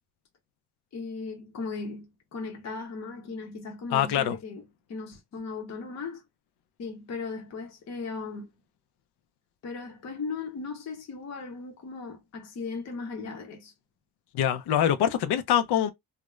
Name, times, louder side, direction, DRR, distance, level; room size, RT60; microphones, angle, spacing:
voice 1, 0.9-4.6 4.9-6.2 6.8-8.5 9.6-13.7, left 4 dB, 40° left, 0.7 m, -37 dB
voice 2, 3.9-4.4 14.3-15.9, left 10 dB, 85° left, 0.5 m, -24 dB
2.4 x 2.1 x 3.0 m
cardioid pair, 155°, 39 cm